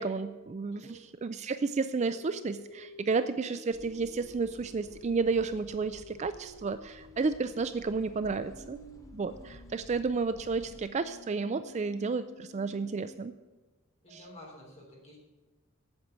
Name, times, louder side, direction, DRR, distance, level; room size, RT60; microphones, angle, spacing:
voice 1, 0.0-8.8 9.1-13.3 14.1-14.2, right 4 dB, 30° right, 12 dB, 0.3 m, -32 dB
sound 1, 2.1-7.5 8.1-13.1 14.1-14.4, left 2 dB, 65° left, 2.4 m, -52 dB
sound 2, 3.7-10.9, left 1 dB, 15° left, 0.9 m, -54 dB
voice 2, 14.0-15.2, equal, 30° left, -3 dB, 3.6 m, -51 dB
8.7 x 7.6 x 8.1 m, 1.2 s
head